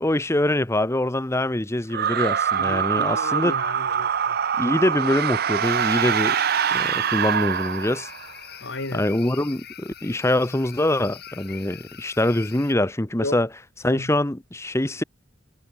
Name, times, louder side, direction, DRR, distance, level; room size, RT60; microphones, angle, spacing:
voice 1, 0.0-3.5 4.6-6.4 6.7-8.1 8.9-13.5 13.8-15.0, left 1 dB, 15° left, 1.0 m, -24 dB
sound 1, 1.9-8.3, right 8 dB, 55° right, 0.6 m, -24 dB
voice 2, 2.6-4.4 8.6-9.0 13.2-13.4 13.9-14.1, left 2 dB, 90° left, 3.1 m, -33 dB
sound 2, 5.6-12.7, left 10 dB, 60° left, 5.5 m, -43 dB
head